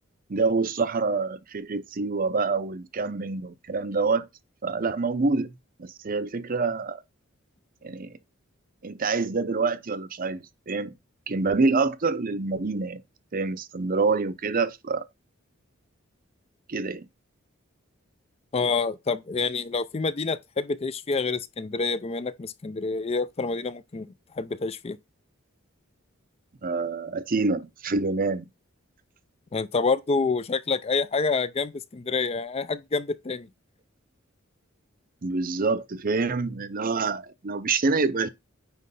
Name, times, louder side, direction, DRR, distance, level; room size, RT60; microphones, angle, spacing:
voice 1, 0.3-4.3 4.6-5.5 5.8-7.0 7.8-8.2 8.8-10.9 11.3-13.0 13.3-15.1 16.7-17.1 26.6-28.5 35.2-38.3, right 4 dB, 40° right, 0.6 m, -26 dB
voice 2, 18.5-24.1 24.3-25.0 29.5-33.5, left 4 dB, 30° left, 0.4 m, -27 dB
9.4 x 3.2 x 5.4 m
head